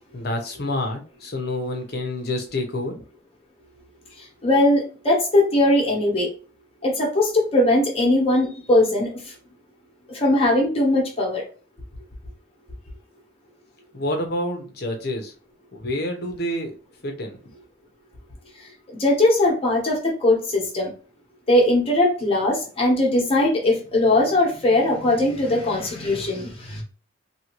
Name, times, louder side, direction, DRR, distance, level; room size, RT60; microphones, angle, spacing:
voice 1, 0.1-3.0 13.9-15.3 15.7-16.8 17.0-17.4, left 1 dB, 55° left, 4 dB, 0.8 m, -28 dB
voice 2, 4.4-6.3 6.8-9.1 10.1-11.4 19.0-20.9 21.5-26.8, left 1 dB, 30° left, -3 dB, 1.1 m, -20 dB
2.7 x 2.7 x 3.0 m, 0.37 s
head